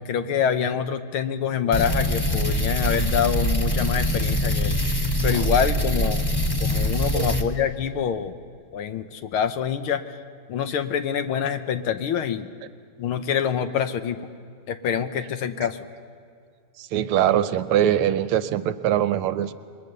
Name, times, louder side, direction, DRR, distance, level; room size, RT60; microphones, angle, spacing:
voice 1, 0.0-6.2 6.6-8.4 8.7-10.2 10.5-12.5 13.0-14.3 14.7-15.8, left 8 dB, 80° left, 9 dB, 1.8 m, -26 dB
sound 1, 1.7-7.4, equal, 20° left, 0.7 m, -23 dB
voice 2, 16.8-19.5, right 11 dB, 85° right, 12 dB, 1.7 m, -22 dB
28.0 x 22.0 x 6.8 m, 2.3 s
omnidirectional pair, 2.4 m